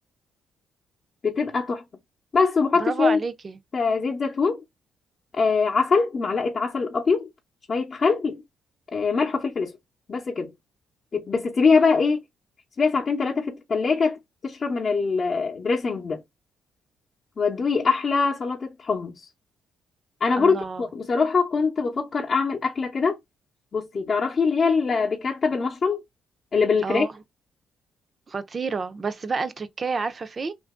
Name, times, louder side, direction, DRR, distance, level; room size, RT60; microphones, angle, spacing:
voice 1, 1.2-1.8 2.3-3.2 3.7-4.6 5.3-7.3 7.7-8.4 8.9-9.8 10.1-10.5 11.1-12.2 12.8-16.2 17.4-19.3 20.2-23.2 23.7-26.0 26.5-27.1, left 4 dB, 40° left, 0.7 m, -23 dB
voice 2, 2.8-3.6 20.4-20.9 26.8-27.1 28.3-30.5, right 4 dB, 35° right, 0.5 m, -29 dB
2.9 x 2.5 x 3.5 m
cardioid pair, 90°, 0 cm